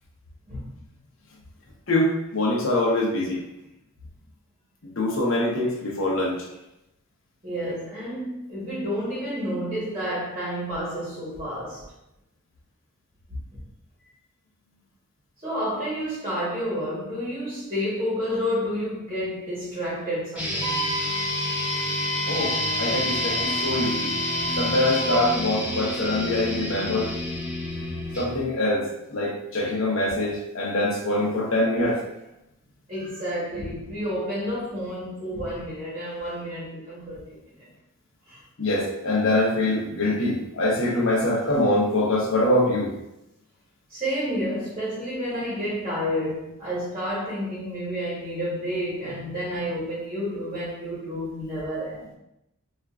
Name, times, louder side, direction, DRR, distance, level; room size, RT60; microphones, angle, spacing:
voice 1, 1.9-3.4 4.8-6.4 22.3-24.1 24.6-27.1 28.2-32.0 38.6-42.9, left 1 dB, 60° left, 0.9 m, -24 dB
voice 2, 7.4-11.9 13.5-13.7 15.4-20.9 22.4-22.6 32.9-37.7 38.3-38.4 43.9-52.2, equal, 25° right, 1.0 m, -30 dB
sound 1, 20.3-28.4, left 1 dB, 5° right, 1.0 m, -29 dB
Wind instrument woodwind instrument, 20.6-25.3, left 1 dB, 30° left, 1.2 m, -30 dB
4.4 x 2.5 x 2.4 m
head